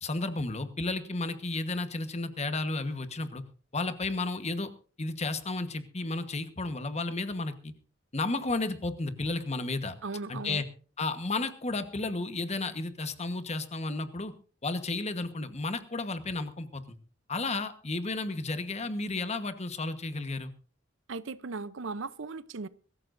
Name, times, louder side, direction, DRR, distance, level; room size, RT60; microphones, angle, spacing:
voice 1, 0.0-3.4 3.7-4.7 5.0-7.7 8.1-10.0 10.3-10.6 11.0-14.3 14.6-16.8 17.3-20.5, left 3 dB, 35° left, 1.2 m, -32 dB
voice 2, 10.0-10.6 21.1-22.7, right 3 dB, 75° right, 0.7 m, -37 dB
23.0 x 14.0 x 2.6 m
head